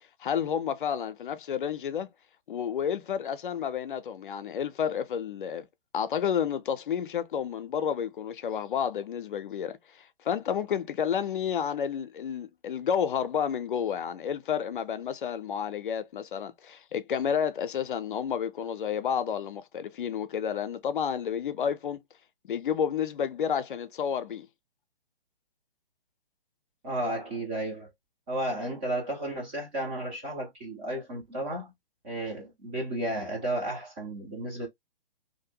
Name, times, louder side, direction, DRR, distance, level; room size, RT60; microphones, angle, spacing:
voice 1, 0.2-2.1 2.5-5.7 5.9-22.0 22.5-24.5, left 8 dB, 60° left, 0.5 m, -30 dB
voice 2, 26.8-27.9 28.3-31.7 32.0-34.7, right 1 dB, 15° right, 0.4 m, -33 dB
2.6 x 2.1 x 2.7 m
hypercardioid pair, 135°, 29 cm